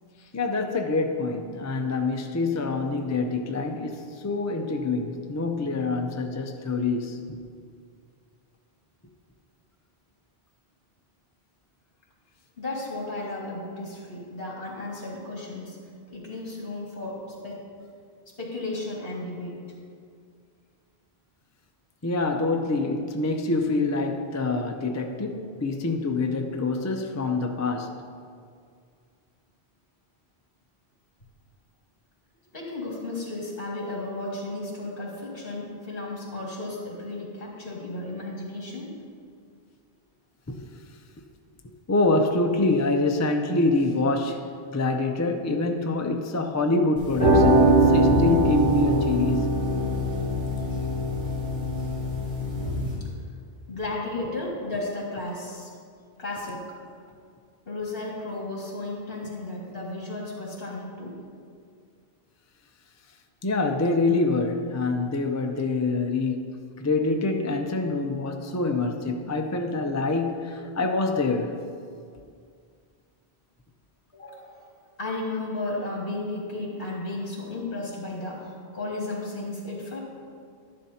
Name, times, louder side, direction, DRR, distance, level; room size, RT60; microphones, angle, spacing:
voice 1, 0.3-7.4 22.0-28.0 40.5-40.6 41.9-49.5 63.4-71.6, left 3 dB, 25° left, 4 dB, 0.4 m, -26 dB
voice 2, 12.6-15.8 16.1-17.6 18.4-19.6 32.5-38.9 53.7-55.7 56.2-56.6 57.7-61.2 74.1-74.6 75.0-80.0, left 2 dB, 60° left, -4 dB, 2.3 m, -34 dB
sound 1, 47.0-52.9, right 1 dB, 65° right, 2.8 m, -22 dB
11.5 x 11.0 x 2.8 m, 2.2 s
omnidirectional pair, 1.1 m